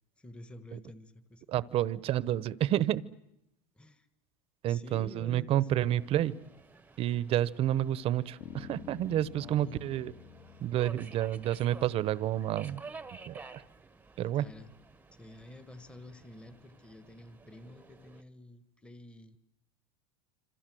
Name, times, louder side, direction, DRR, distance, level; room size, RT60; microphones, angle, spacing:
voice 1, 0.2-1.4 3.7-4.1 4.6-6.2 9.4-9.8 14.3-14.7 15.1-19.4, left 1 dB, 5° left, 11 dB, 1.4 m, -50 dB
voice 2, 1.5-3.0 4.6-6.3 7.0-10.1 10.6-12.8 13.3-13.6 14.2-14.5, right 12 dB, 40° right, 18 dB, 1.0 m, -29 dB
Subway metro underground, 5.9-18.2, right 4 dB, 10° right, 1.1 m, -52 dB
Bass guitar, 8.4-12.8, left 9 dB, 40° left, 2.0 m, -51 dB
27.0 x 26.5 x 7.8 m, 0.82 s
supercardioid pair, 125°, 15 cm